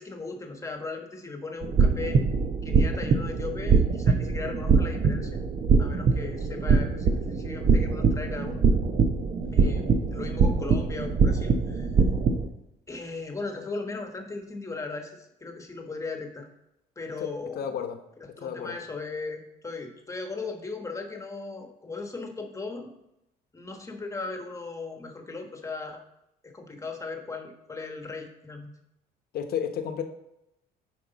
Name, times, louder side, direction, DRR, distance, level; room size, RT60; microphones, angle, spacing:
voice 1, 0.0-2.2 2.6-5.4 5.8-8.6 9.5-11.9 12.9-16.5 17.0-17.8 18.4-22.9 23.5-26.0 26.4-28.7, left 3 dB, 20° left, 4 dB, 1.2 m, -37 dB
sound 1, 1.6-12.5, right 5 dB, 45° right, 0.8 m, -23 dB
voice 2, 17.5-18.0 18.4-18.7 29.3-30.0, left 8 dB, 65° left, 6 dB, 1.0 m, -31 dB
9.6 x 4.7 x 4.0 m, 0.85 s
cardioid pair, 110°, 17 cm